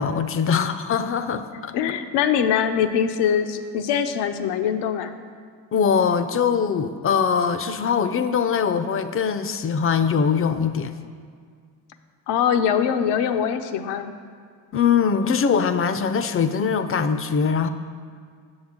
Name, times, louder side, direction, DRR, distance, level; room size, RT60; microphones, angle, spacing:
voice 1, 0.0-1.7 5.7-10.9 14.7-17.7, left 6 dB, 35° left, 11 dB, 0.4 m, -22 dB
voice 2, 1.7-5.2 12.3-14.1, left 8 dB, 80° left, 8 dB, 0.6 m, -23 dB
7.1 x 6.3 x 3.6 m, 2.1 s
supercardioid pair, 65°, 41 cm